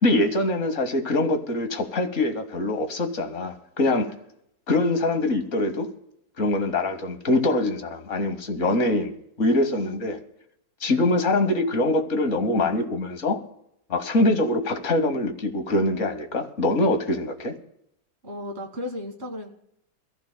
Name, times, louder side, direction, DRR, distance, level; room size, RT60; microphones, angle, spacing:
voice 1, 0.0-4.1 4.7-5.9 6.4-9.1 9.4-10.2 10.8-13.4 13.9-17.6, left 2 dB, 45° left, 1.3 m, -23 dB
voice 2, 18.2-19.5, left 1 dB, 35° right, 1.9 m, -34 dB
24.0 x 15.0 x 2.2 m
omnidirectional pair, 2.1 m